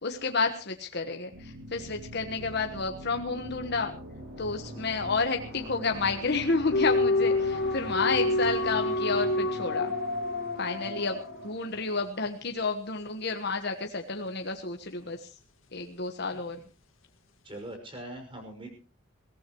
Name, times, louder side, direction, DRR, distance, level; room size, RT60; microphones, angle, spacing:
voice 1, 0.0-3.9 4.4-9.9 10.6-15.3 15.7-16.6, left 4 dB, 50° left, 5 dB, 1.3 m, -30 dB
sound 1, 1.3-12.1, equal, 50° right, 7.6 m, -43 dB
sound 2, 6.7-12.0, left 2 dB, 75° left, 2.0 m, -28 dB
voice 2, 10.8-11.2 17.4-18.7, right 1 dB, 25° right, 4 dB, 6.0 m, -42 dB
22.0 x 17.5 x 3.1 m, 0.35 s
head